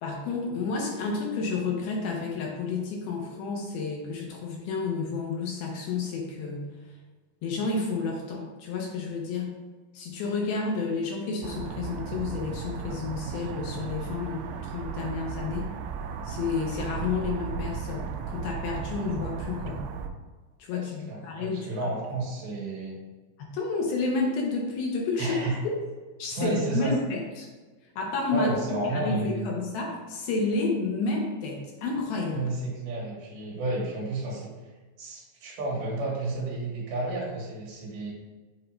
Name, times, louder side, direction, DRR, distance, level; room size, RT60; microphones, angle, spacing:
voice 1, 0.0-6.7 7.4-9.5 9.9-15.7 16.3-19.9 20.6-21.7 23.4-25.4 25.6-25.7 26.2-27.5 28.0-28.5 28.8-32.5, left 4 dB, 75° left, -1 dB, 2.6 m, -30 dB
sound 1, 11.4-20.1, right 6 dB, 90° right, 2.6 m, -35 dB
voice 2, 20.7-23.0 25.2-25.6 26.3-27.0 28.3-29.5 32.3-34.5 35.0-38.1, right 2 dB, 70° right, -4 dB, 3.3 m, -31 dB
7.9 x 2.7 x 4.4 m, 1.3 s
omnidirectional pair, 4.7 m